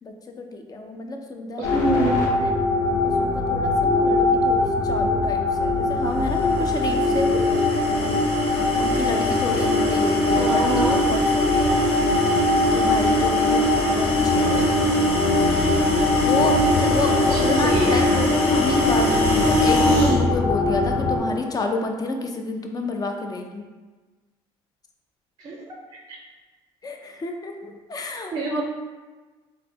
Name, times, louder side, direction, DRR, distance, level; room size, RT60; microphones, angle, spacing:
voice 1, 0.0-2.0 2.4-2.5 3.0-7.3 8.8-11.8 12.7-14.7 16.2-23.6 26.8-28.6, left 3 dB, 30° left, 4 dB, 0.5 m, -30 dB
sound 1, 1.6-21.2, left 2 dB, 85° left, 0.8 m, -22 dB
voice 2, 1.6-2.4 10.3-11.0 14.5-14.7 17.3-18.2 25.4-25.6 26.1-26.2 28.3-28.6, right 2 dB, 35° right, -1 dB, 0.5 m, -26 dB
sound 2, 6.3-20.2, equal, 50° left, 0.9 m, -23 dB
4.0 x 2.2 x 2.8 m, 1.3 s
supercardioid pair, 75°, 13 cm